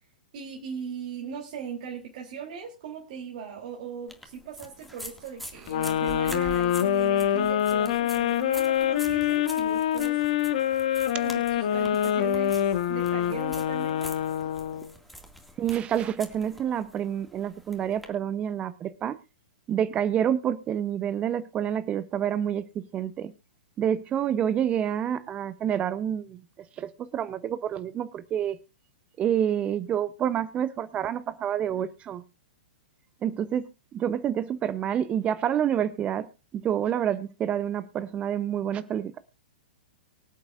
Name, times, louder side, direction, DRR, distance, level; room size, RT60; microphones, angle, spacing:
voice 1, 0.3-10.2 11.1-14.1, right 7 dB, 50° right, 3.3 m, -39 dB
sound 1, 4.1-18.0, right 1 dB, ahead, 2.2 m, -45 dB
sound 2, 5.7-14.9, left 10 dB, 55° left, 1.4 m, -25 dB
voice 2, 15.6-19.2 19.7-23.3 23.8-26.4 26.8-28.6 29.2-32.2 33.2-39.2, right 9 dB, 25° right, 0.8 m, -28 dB
24.0 x 8.2 x 2.5 m
figure-of-eight pair, 110°, 5 cm